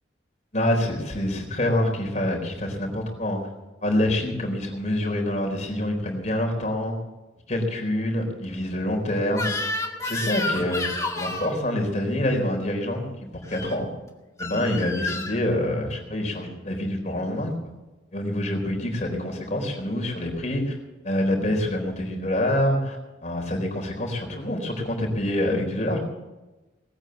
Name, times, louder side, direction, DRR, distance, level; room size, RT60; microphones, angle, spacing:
voice 1, 0.5-3.4 3.8-6.9 7.5-9.5 10.0-10.8 11.1-13.1 13.3-13.9 14.4-17.5 18.1-20.8 21.0-26.0, left 1 dB, 40° left, 1 dB, 4.1 m, -26 dB
Crying sobbing / Screech, 9.3-11.5 13.4-13.7 14.4-15.4, left 2 dB, 15° left, 2.0 m, -30 dB
19.5 x 9.1 x 7.7 m, 1.1 s
head